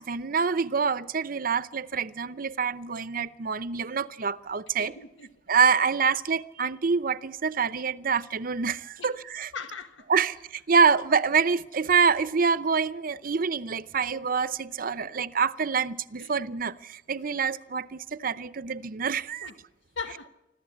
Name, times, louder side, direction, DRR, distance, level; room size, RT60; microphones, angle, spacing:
voice 1, 0.0-4.9 5.5-9.5 10.1-19.5, right 5 dB, 50° right, 0.7 m, -26 dB
voice 2, 4.8-5.3 9.0-9.1 9.5-10.1 14.8-15.1 16.2-16.3 19.4-19.5 19.9-20.3, left 5 dB, 90° left, 1.5 m, -39 dB
25.5 x 14.5 x 8.5 m
head